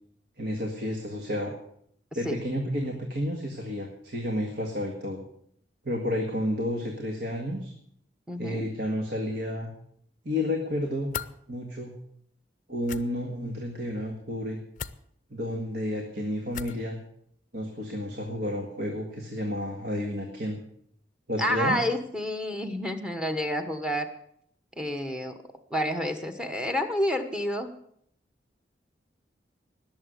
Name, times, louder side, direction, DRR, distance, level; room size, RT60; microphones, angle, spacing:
voice 1, 0.4-1.5 2.2-5.2 5.8-7.7 8.4-9.7 10.2-11.1 11.5-11.9 12.7-14.6 15.3-17.0 17.5-20.6 21.3-21.8, left 1 dB, 60° right, 2 dB, 2.0 m, -31 dB
voice 2, 8.3-8.7 21.4-24.1 24.8-25.4 25.7-27.7, equal, 5° right, 7 dB, 1.1 m, -29 dB
sound 1, 11.1-11.3 12.8-13.0 14.8-15.0 16.5-16.8, left 7 dB, 45° left, 0.6 m, -36 dB
19.5 x 7.2 x 8.1 m, 0.70 s
head